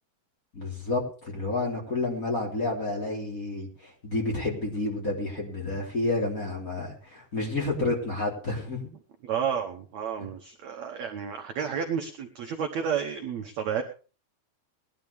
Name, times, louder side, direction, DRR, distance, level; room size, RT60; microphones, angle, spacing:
voice 1, 0.5-8.8 10.2-10.3, left 2 dB, 20° left, -2 dB, 3.7 m, -30 dB
voice 2, 9.2-13.8, right 7 dB, 65° right, 4 dB, 1.8 m, -31 dB
20.0 x 12.0 x 3.5 m, 0.37 s
omnidirectional pair, 4.4 m